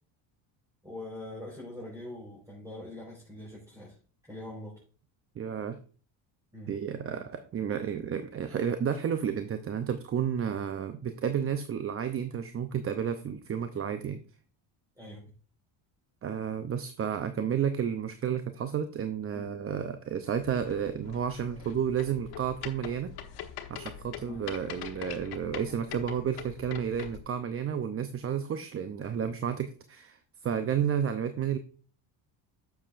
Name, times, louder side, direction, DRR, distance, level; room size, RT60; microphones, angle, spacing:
voice 1, 0.8-4.0 4.3-4.8 6.5-6.7 15.0-15.2 19.3-19.5, left 1 dB, 10° right, -6 dB, 4.5 m, -43 dB
voice 2, 5.4-5.8 6.7-14.2 16.2-23.1 23.7-31.6, right 8 dB, 30° right, 9 dB, 0.7 m, -31 dB
sound 1, 20.3-27.2, left 9 dB, 60° left, 1.2 m, -43 dB
9.7 x 7.2 x 2.5 m, 0.39 s
cardioid pair, 100°, 43 cm